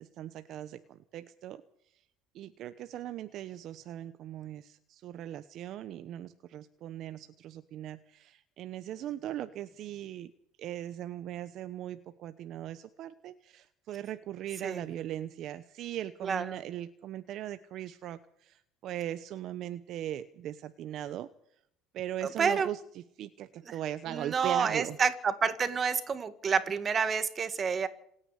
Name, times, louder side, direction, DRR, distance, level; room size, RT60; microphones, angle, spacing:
voice 1, 0.0-1.6 2.3-10.3 10.6-21.3 21.9-25.0, right 12 dB, 50° right, 12 dB, 1.0 m, -39 dB
voice 2, 16.2-16.6 22.2-22.7 23.6-23.8 24.1-27.9, right 6 dB, 25° right, 11 dB, 2.0 m, -29 dB
27.0 x 9.9 x 9.9 m, 0.72 s
cardioid pair, 140°, 0 cm